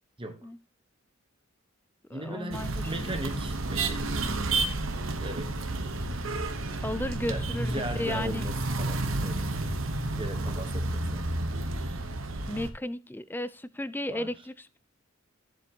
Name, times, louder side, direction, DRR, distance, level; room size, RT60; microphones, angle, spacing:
voice 1, 0.2-0.5 2.1-4.3 5.0-5.9 7.3-9.5 10.1-11.2 14.1-14.3, right 1 dB, 25° right, 1.1 m, -38 dB
voice 2, 2.1-3.1 6.8-8.4 12.4-14.8, left 1 dB, 10° left, 0.4 m, -34 dB
sound 1, 2.5-12.7, right 2 dB, 70° right, 1.2 m, -31 dB
sound 2, 5.0-11.2, equal, 45° left, 1.5 m, -41 dB
13.5 x 7.7 x 3.0 m
head